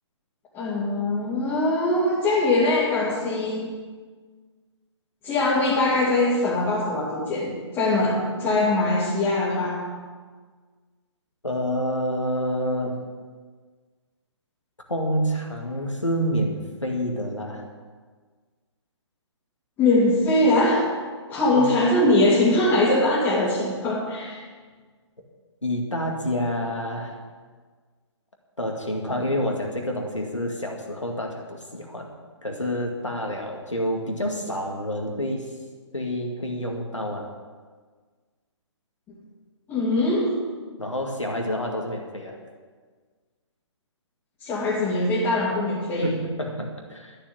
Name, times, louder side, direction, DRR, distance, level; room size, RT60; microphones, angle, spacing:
voice 1, 0.5-3.7 5.2-9.8 19.8-20.8 21.3-24.4 39.7-40.4 44.4-46.1, left 2 dB, 20° left, -8 dB, 2.8 m, -22 dB
voice 2, 11.4-13.0 14.9-17.7 21.5-21.7 25.6-27.2 28.6-32.1 32.4-35.5 35.9-37.3 40.8-42.4 46.0-47.2, equal, 85° left, 1 dB, 2.1 m, -28 dB
12.5 x 7.4 x 8.8 m, 1.5 s
figure-of-eight pair, 130°, 15 cm